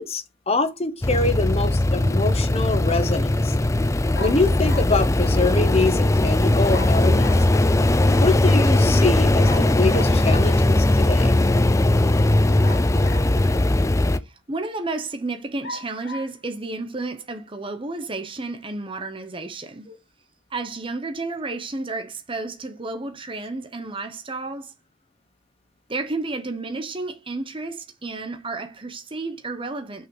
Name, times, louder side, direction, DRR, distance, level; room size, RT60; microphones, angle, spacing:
voice 1, 0.0-3.5 4.2-7.3 8.2-11.4, left 3 dB, 30° left, 0.9 m, -24 dB
sound 1, 1.0-14.2, left 1 dB, 15° left, 0.4 m, -19 dB
sound 2, 4.1-5.0 6.7-7.5 9.4-10.2 12.6-13.5 14.2-14.3 15.6-16.3, left 1 dB, 55° left, 1.5 m, -38 dB
voice 2, 14.2-20.0 20.5-24.7 25.9-30.1, right 3 dB, 25° right, 0.8 m, -31 dB
5.9 x 3.9 x 6.1 m
head